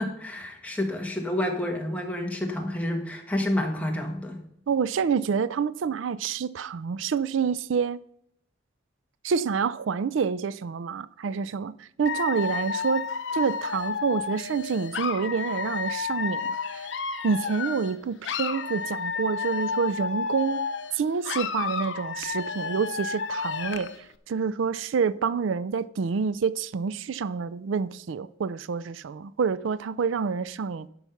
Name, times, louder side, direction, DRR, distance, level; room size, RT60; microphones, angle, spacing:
voice 1, 0.0-4.4, left 1 dB, 5° left, 1.4 m, -29 dB
voice 2, 4.7-8.0 9.2-13.0 13.3-16.9 17.2-20.6 20.9-23.9 24.3-30.9, right 6 dB, 90° right, 0.4 m, -28 dB
Dog / Alarm, 12.1-18.0 18.2-21.0 21.2-24.0, left 5 dB, 80° left, 0.7 m, -31 dB
11.5 x 5.5 x 5.8 m
head